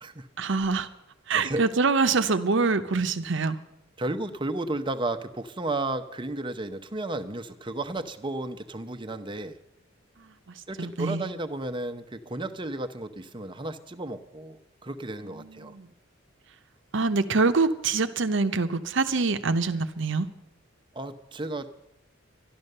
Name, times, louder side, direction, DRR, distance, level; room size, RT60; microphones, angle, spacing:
voice 1, 0.4-0.9 1.3-3.6 10.8-11.3 15.2-15.9 16.9-20.3, right 4 dB, 65° right, 10 dB, 0.9 m, -25 dB
voice 2, 4.0-9.6 10.7-15.7 20.9-21.7, right 2 dB, 25° right, 8 dB, 0.8 m, -33 dB
12.5 x 12.0 x 6.7 m, 0.85 s
head